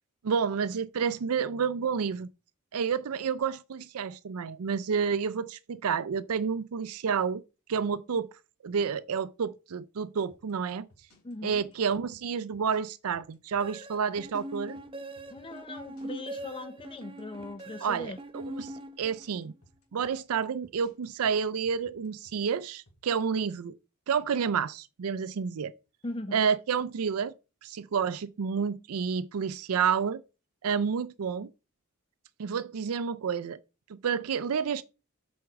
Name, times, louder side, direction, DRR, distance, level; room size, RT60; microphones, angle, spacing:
voice 1, 0.2-2.3 2.7-7.4 7.7-8.3 8.6-10.9 11.4-14.8 17.8-18.7 19.0-19.5 19.9-23.7 24.1-25.7 26.3-27.3 27.6-30.2 30.6-31.5 32.4-33.6 33.9-34.8, right 6 dB, 75° right, 0.4 m, -29 dB
sound 1, 10.3-23.1, left 1 dB, 80° left, 3.3 m, -61 dB
voice 2, 11.2-11.7 15.3-18.2 26.0-26.4, left 2 dB, 25° left, 0.6 m, -40 dB
sound 2, 13.6-19.4, right 1 dB, 25° right, 0.7 m, -42 dB
7.8 x 5.2 x 4.7 m
head